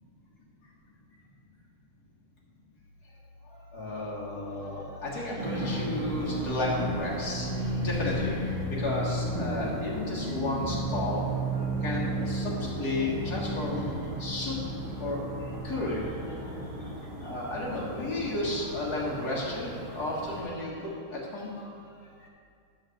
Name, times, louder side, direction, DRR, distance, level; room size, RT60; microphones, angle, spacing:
voice 1, 3.7-11.2 11.5-13.8 14.2-14.5 15.0-15.2 15.6-16.4 17.2-20.8 21.1-21.7, left 2 dB, 40° left, -6 dB, 1.7 m, -33 dB
sound 1, 5.4-20.4, right 1 dB, 75° right, 3.1 m, -33 dB
11.5 x 4.1 x 7.7 m, 2.4 s
omnidirectional pair, 3.4 m